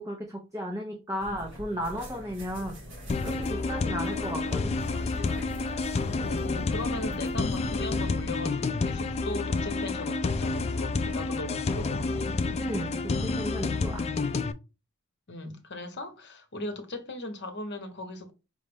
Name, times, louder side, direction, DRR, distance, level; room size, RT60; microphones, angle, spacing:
voice 1, 0.0-2.8 3.2-4.8 12.6-14.1, equal, 15° right, 0.7 m, -35 dB
sound 1, 1.2-8.1, equal, 60° right, 1.8 m, -42 dB
sound 2, 3.1-14.5, left 3 dB, 30° left, 0.3 m, -29 dB
voice 2, 6.2-12.3 15.3-18.3, left 1 dB, 55° left, 1.0 m, -38 dB
5.3 x 2.4 x 3.4 m
head